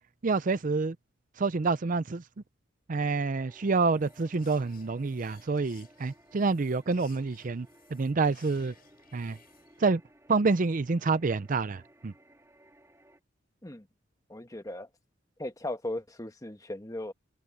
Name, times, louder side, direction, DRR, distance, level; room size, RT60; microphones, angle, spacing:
voice 1, 0.2-1.0 1.4-2.2 2.9-7.7 7.9-8.7 9.1-9.4 9.8-10.0 10.3-12.1, right 4 dB, 45° right, 0.5 m, -27 dB
sound 1, 2.9-13.2, right 1 dB, 15° right, 3.7 m, -60 dB
sound 2, 3.6-9.9, left 8 dB, 50° left, 6.9 m, -60 dB
voice 2, 14.3-14.9 15.4-17.1, left 1 dB, 20° left, 1.2 m, -37 dB
open air
head